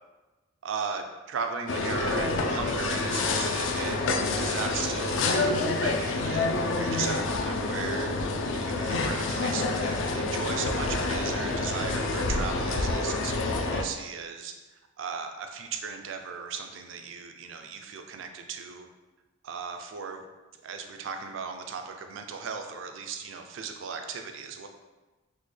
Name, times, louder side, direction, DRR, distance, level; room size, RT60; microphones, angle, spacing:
voice 1, 0.6-4.0 4.4-6.5 6.8-8.1 8.6-14.5 15.0-18.9 19.4-20.2 20.6-24.7, right 5 dB, 70° right, 5 dB, 0.4 m, -36 dB
sound 1, 1.7-13.8, left 3 dB, 65° left, 0.3 m, -28 dB
3.9 x 2.1 x 3.2 m, 1.1 s
head